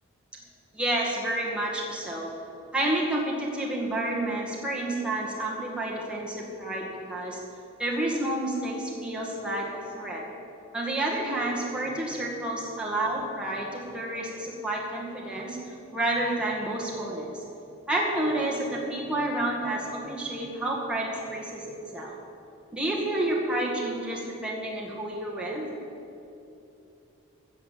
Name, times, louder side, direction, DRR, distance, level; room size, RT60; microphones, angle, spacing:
voice 1, 0.7-2.3 2.7-7.4 7.8-10.2 10.7-17.4 17.9-22.2 22.7-25.7, right 1 dB, 5° right, -4 dB, 2.0 m, -30 dB
14.0 x 6.6 x 8.5 m, 2.8 s
head